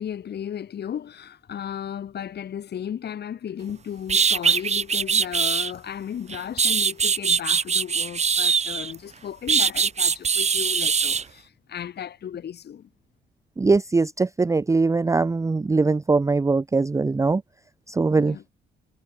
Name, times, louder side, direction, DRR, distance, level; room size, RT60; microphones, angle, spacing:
voice 1, 0.0-12.9 18.2-18.4, left 9 dB, 55° left, 1.9 m, -35 dB
sound 1, 3.7-3.8 4.1-5.7 6.3-8.9 9.5-11.2, right 6 dB, 35° right, 1.2 m, -22 dB
voice 2, 13.6-17.4 17.9-18.4, right 3 dB, 15° right, 0.5 m, -21 dB
cardioid pair, 90°, 20 cm